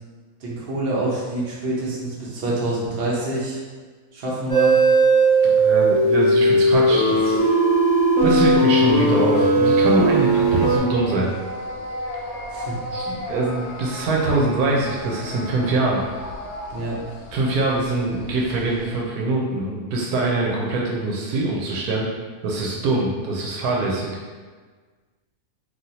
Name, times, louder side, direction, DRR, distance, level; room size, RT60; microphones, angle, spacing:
voice 1, 0.4-3.6 4.1-4.8 12.5-12.8 16.7-17.0, right 1 dB, 50° right, -6 dB, 0.9 m, -26 dB
sound 1, 4.5-10.8, right 2 dB, 5° right, 0.8 m, -17 dB
voice 2, 5.4-7.4 8.2-11.4 12.9-16.0 17.3-22.1 22.4-24.1, right 2 dB, 85° right, -2 dB, 1.1 m, -23 dB
sound 2, 9.8-19.0, left 1 dB, 75° left, 1.0 m, -35 dB
3.2 x 2.4 x 2.7 m, 1.4 s
omnidirectional pair, 1.6 m